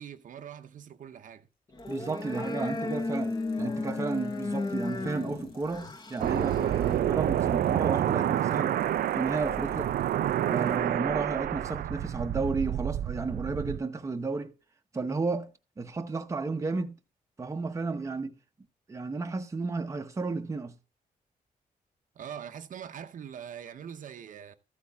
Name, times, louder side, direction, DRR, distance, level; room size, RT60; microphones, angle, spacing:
voice 1, 0.0-1.5 22.1-24.5, right 8 dB, 60° right, 0.7 m, -43 dB
sound 1, 1.7-7.0, left 3 dB, 25° left, 1.1 m, -34 dB
sound 2, 1.8-10.8, left 3 dB, 85° left, 6.5 m, -63 dB
voice 2, 1.9-8.8 9.1-9.9 10.4-14.5 14.9-17.0 17.4-18.4 18.9-20.8, right 3 dB, 20° right, 0.8 m, -33 dB
sound 3, 6.2-13.8, right 11 dB, 85° right, 0.4 m, -28 dB
14.0 x 8.5 x 3.5 m
wide cardioid pair, 175°, 15 cm